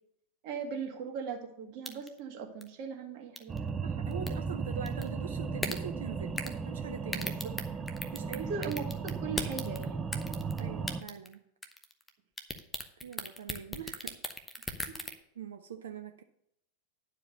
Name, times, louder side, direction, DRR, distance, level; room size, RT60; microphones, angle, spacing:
voice 1, 0.4-3.8 8.4-10.1 14.9-15.0, right 5 dB, 45° right, 2 dB, 1.8 m, -39 dB
sound 1, 1.8-2.2 2.6-2.7 3.4-3.6 4.1-4.3 4.9-5.1 5.6-5.8 6.4-6.6 7.1-8.4 8.6-9.8 10.1-10.6 10.9-11.3 11.6-12.1 12.4-15.1, left 1 dB, 5° left, 0.9 m, -36 dB
sound 2, 3.5-11.0, right 5 dB, 15° right, 0.5 m, -36 dB
voice 2, 3.8-7.4 8.1-8.5 10.6-11.5 13.0-14.2 15.4-16.2, right 7 dB, 65° right, 6 dB, 0.6 m, -43 dB
10.5 x 4.8 x 6.6 m, 0.73 s
figure-of-eight pair, 90°, 0 cm